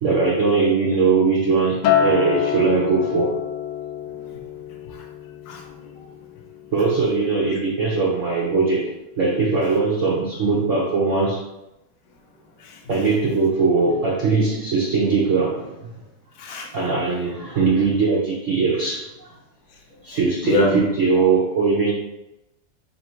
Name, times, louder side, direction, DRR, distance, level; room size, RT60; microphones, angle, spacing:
voice 1, 0.0-3.4 6.7-11.5 12.9-15.9 16.7-19.4 20.0-21.9, right 4 dB, 90° right, -4 dB, 0.6 m, -20 dB
Acoustic guitar, 1.8-6.3 6.6-7.0, left 8 dB, 90° left, 1.5 m, -26 dB
voice 2, 5.5-6.1 12.6-13.1 16.4-16.7 20.1-20.2 20.4-20.8, left 2 dB, 60° left, 0 dB, 1.0 m, -27 dB
4.2 x 2.9 x 4.3 m, 0.92 s
omnidirectional pair, 2.4 m